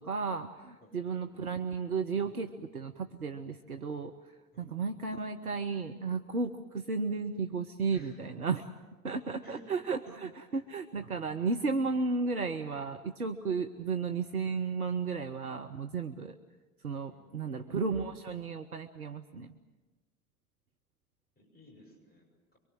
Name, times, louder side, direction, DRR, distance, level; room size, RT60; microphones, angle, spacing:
voice 1, 0.0-4.1 4.6-8.7 9.0-16.3 16.8-19.5, right 4 dB, 85° right, 7 dB, 0.8 m, -34 dB
voice 2, 7.9-8.3 9.4-9.7 17.1-17.8 21.4-22.6, left 1 dB, 20° left, 1 dB, 7.2 m, -56 dB
24.0 x 23.5 x 7.8 m, 1.3 s
figure-of-eight pair, 65°, 43 cm